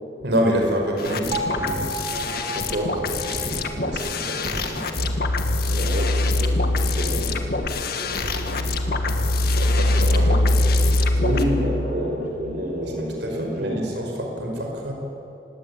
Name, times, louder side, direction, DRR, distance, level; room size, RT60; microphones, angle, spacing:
voice 1, 0.2-1.9 3.2-5.1 9.6-11.2 12.8-14.9, right 1 dB, 70° right, 1 dB, 5.5 m, -28 dB
sound 1, 1.0-11.4, left 4 dB, 60° left, 1.9 m, -28 dB
Bell, 1.3-5.4, right 1 dB, 35° right, 1.9 m, -34 dB
voice 2, 2.5-3.0 5.7-9.2 11.2-13.9, equal, 55° right, -1 dB, 5.1 m, -29 dB
sound 2, 4.9-12.5, left 1 dB, 90° left, 1.4 m, -22 dB
26.5 x 20.0 x 8.8 m, 2.9 s
head